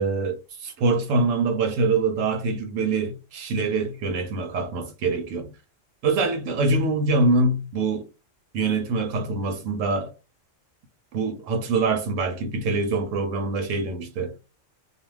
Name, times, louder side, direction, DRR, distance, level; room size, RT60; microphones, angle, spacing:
voice 1, 0.0-5.5 6.0-8.1 8.5-10.1 11.1-14.3, right 3 dB, 80° right, 0.9 m, -24 dB
2.4 x 2.2 x 3.1 m
omnidirectional pair, 1.3 m